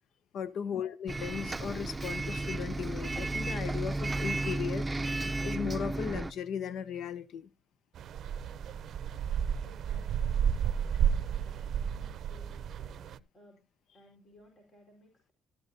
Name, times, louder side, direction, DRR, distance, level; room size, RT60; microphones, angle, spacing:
voice 1, 0.3-4.9 5.4-7.5, left 7 dB, 70° left, 0.7 m, -37 dB
Bus, 1.1-6.3, right 2 dB, 20° right, 0.6 m, -33 dB
sound 1, 7.9-13.2, right 8 dB, 65° right, 0.6 m, -32 dB
voice 2, 9.6-13.6 13.9-15.3, equal, 45° left, 4.4 m, -59 dB
13.5 x 12.0 x 2.7 m
cardioid pair, 75°, 0 cm